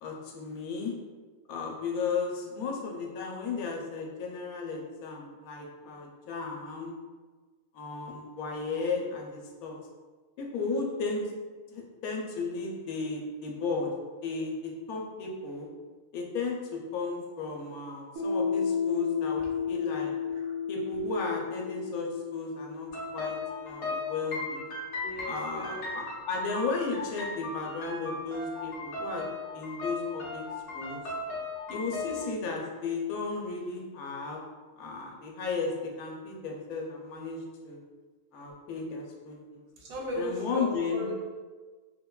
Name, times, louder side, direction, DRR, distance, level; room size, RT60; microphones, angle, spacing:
voice 1, 0.0-0.9 1.5-6.9 7.7-9.8 10.4-11.2 11.7-13.9 14.2-15.7 16.1-20.1 20.7-22.9 23.1-23.4 23.6-24.8 25.3-29.3 29.5-30.4 30.7-31.0 31.7-34.4 34.8-37.8 38.3-39.6 40.2-41.1, left 4 dB, 90° left, -1 dB, 1.1 m, -34 dB
Piano, 18.2-25.4, left 6 dB, 70° right, 1.2 m, -33 dB
sound 1, 22.9-32.3, left 2 dB, 65° left, 0.8 m, -37 dB
voice 2, 25.0-26.0 39.8-41.3, equal, 90° right, -2 dB, 1.1 m, -37 dB
3.2 x 2.2 x 2.2 m, 1.4 s
omnidirectional pair, 1.5 m